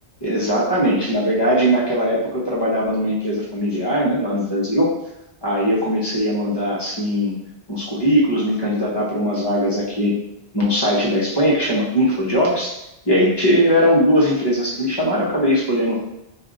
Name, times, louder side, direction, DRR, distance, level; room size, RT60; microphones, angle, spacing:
voice 1, 0.2-4.9 5.4-7.4 7.7-10.2 10.5-12.8 13.0-16.0, equal, 25° left, -5 dB, 0.9 m, -20 dB
4.7 x 2.6 x 2.6 m, 0.85 s
omnidirectional pair, 1.1 m